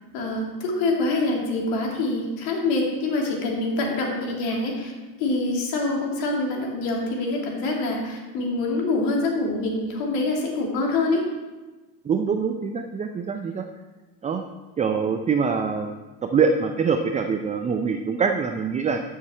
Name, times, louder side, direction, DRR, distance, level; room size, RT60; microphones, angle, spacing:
voice 1, 0.1-4.9 5.2-11.2, left 2 dB, 70° left, -1 dB, 2.8 m, -25 dB
voice 2, 12.0-13.7 14.2-14.4 14.8-15.9 16.2-19.0, right 5 dB, 15° right, 6 dB, 0.4 m, -24 dB
12.5 x 6.6 x 4.5 m, 1.2 s
supercardioid pair, 105°, 48 cm